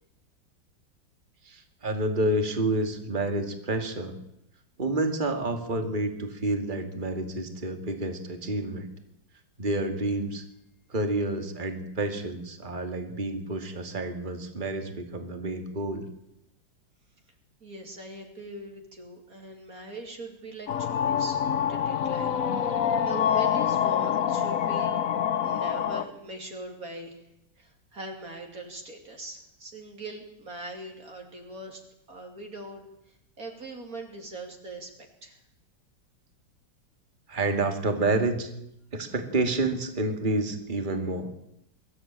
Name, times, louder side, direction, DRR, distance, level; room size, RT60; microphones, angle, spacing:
voice 1, 1.4-4.2 4.8-8.9 9.6-10.4 10.9-16.1 37.3-38.5 38.9-41.3, right 2 dB, 25° right, 6 dB, 2.3 m, -29 dB
voice 2, 17.6-25.0 25.4-27.2 27.6-31.8 32.1-32.8 33.4-34.9 35.2-35.4, right 2 dB, 50° right, 2 dB, 3.3 m, -41 dB
sound 1, 20.7-26.0, left 8 dB, 55° left, 1.3 m, -26 dB
23.0 x 14.0 x 8.9 m, 0.81 s
omnidirectional pair, 2.0 m